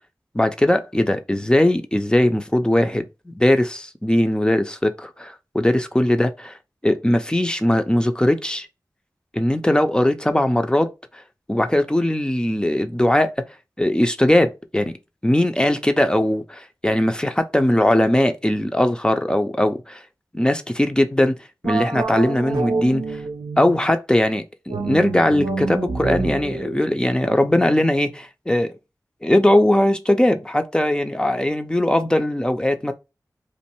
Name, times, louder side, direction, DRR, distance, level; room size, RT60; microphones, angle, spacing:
voice 1, 0.3-6.5 6.8-8.7 9.3-10.9 11.5-13.3 13.8-14.9 15.2-20.0 20.3-21.4 21.6-23.2 23.6-28.7 29.2-32.9, left 1 dB, 15° left, 0.5 m, -20 dB
sound 1, 21.6-23.9 24.7-28.0, right 4 dB, 85° right, 0.4 m, -28 dB
3.1 x 2.5 x 4.4 m
wide cardioid pair, 75°, 7 cm